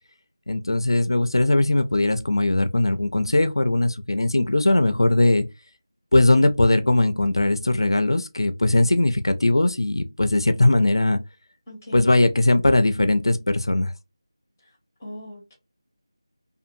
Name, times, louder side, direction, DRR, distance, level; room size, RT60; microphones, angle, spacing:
voice 1, 0.5-5.4 6.1-11.2 11.9-13.9, left 2 dB, 65° left, 0.3 m, -20 dB
voice 2, 11.7-12.3 15.0-15.5, equal, 5° left, 0.5 m, -39 dB
2.5 x 2.5 x 2.5 m
figure-of-eight pair, 180°, 3 cm